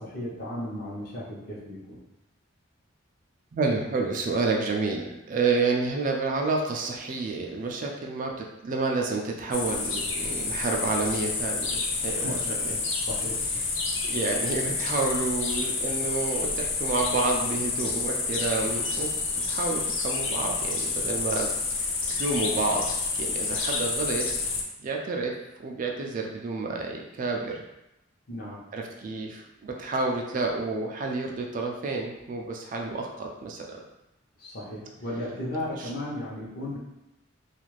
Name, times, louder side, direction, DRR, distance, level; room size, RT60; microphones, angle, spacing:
voice 1, 0.0-2.0 12.1-13.6 28.3-28.6 34.4-36.8, left 1 dB, 50° left, -5 dB, 0.8 m, -35 dB
voice 2, 3.5-12.8 14.0-22.9 23.2-24.3 24.8-27.6 28.7-33.8 35.8-35.9, right 3 dB, 40° right, 1 dB, 0.3 m, -29 dB
sound 1, 9.5-24.6, left 4 dB, 65° left, 0.4 m, -29 dB
2.4 x 2.4 x 3.1 m, 0.92 s
head